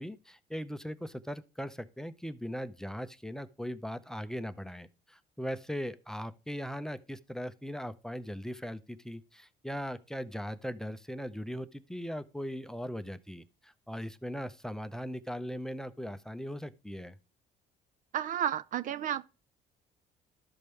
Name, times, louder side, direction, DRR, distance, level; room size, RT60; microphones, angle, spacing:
voice 1, 0.0-17.2, equal, 5° left, 0.5 m, -39 dB
voice 2, 18.1-19.2, right 10 dB, 50° right, 0.4 m, -32 dB
12.5 x 5.2 x 3.2 m
cardioid pair, 110°, 17 cm